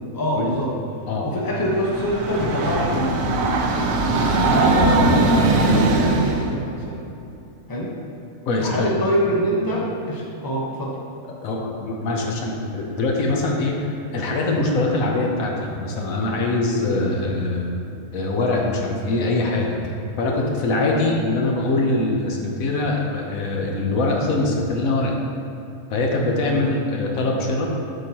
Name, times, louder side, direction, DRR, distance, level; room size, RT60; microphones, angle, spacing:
voice 1, 0.1-0.7 1.2-3.5 4.0-7.0 7.7-7.9 8.6-11.0 16.7-17.1 20.8-21.0 26.4-26.7, equal, 15° left, -4 dB, 0.9 m, -25 dB
Train, 1.6-6.5, right 2 dB, 80° right, 1.1 m, -20 dB
voice 2, 8.5-8.9 11.2-17.7 18.1-25.1 25.9-27.7, left 2 dB, 80° left, 0 dB, 1.3 m, -23 dB
8.0 x 5.7 x 2.9 m, 2.7 s
omnidirectional pair, 1.4 m